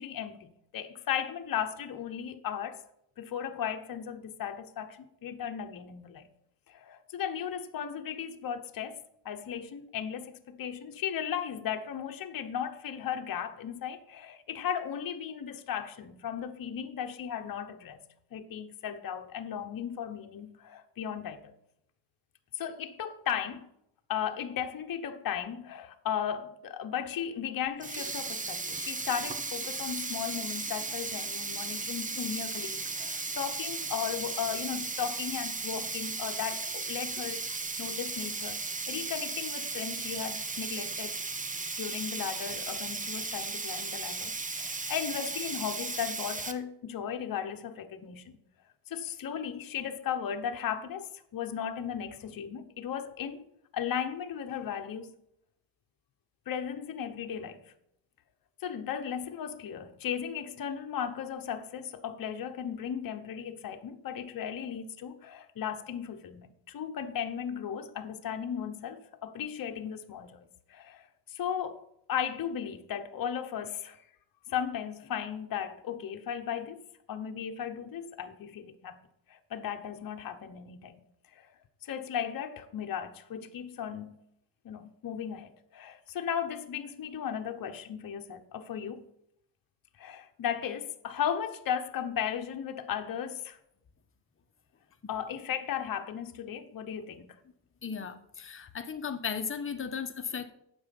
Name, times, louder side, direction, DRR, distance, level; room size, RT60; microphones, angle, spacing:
voice 1, 0.0-2.8 3.2-6.3 6.7-18.0 18.3-21.5 22.5-23.7 24.1-41.2 41.8-48.4 48.9-53.5 53.7-55.1 56.5-57.7 58.6-71.8 72.1-74.0 74.5-79.0 79.3-80.9 81.3-81.5 81.8-84.2 84.6-89.0 90.0-93.6 95.1-97.4, left 8 dB, 45° left, 1.1 m, -36 dB
Sink (filling or washing), 27.7-46.5, right 3 dB, 15° right, 0.8 m, -36 dB
voice 2, 97.8-100.5, left 6 dB, 25° left, 1.1 m, -36 dB
9.7 x 7.2 x 5.3 m
cardioid pair, 120°, 49 cm